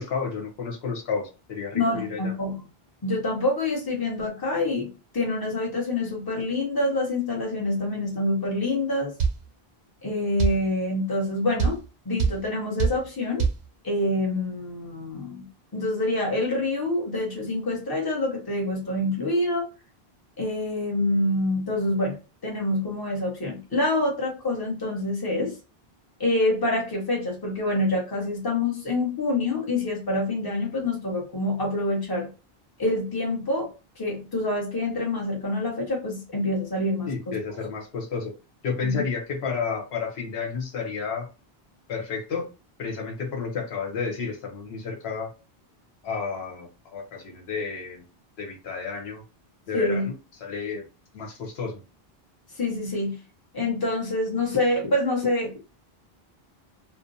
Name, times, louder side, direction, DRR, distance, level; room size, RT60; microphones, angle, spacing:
voice 1, 0.0-2.3 37.1-38.3 38.6-41.3 41.9-42.5 42.8-45.3 46.0-48.0 48.4-49.2 49.7-50.1 50.4-50.9 51.1-51.8, left 5 dB, 90° left, 2 dB, 1.0 m, -31 dB
voice 2, 1.7-2.6 3.0-9.1 10.0-13.5 13.8-15.5 15.7-19.7 20.4-22.2 22.4-25.6 26.2-32.3 32.8-33.7 34.0-37.4 38.8-39.0 49.7-50.1 52.5-53.2 53.5-55.5, left 2 dB, 25° left, -1 dB, 0.9 m, -26 dB
sound 1, 9.2-9.4 10.4-10.6 11.6-11.8 12.2-12.4 12.8-13.0 13.4-13.6, right 5 dB, 55° right, 0.5 m, -22 dB
2.5 x 2.1 x 2.6 m, 0.31 s
omnidirectional pair, 1.0 m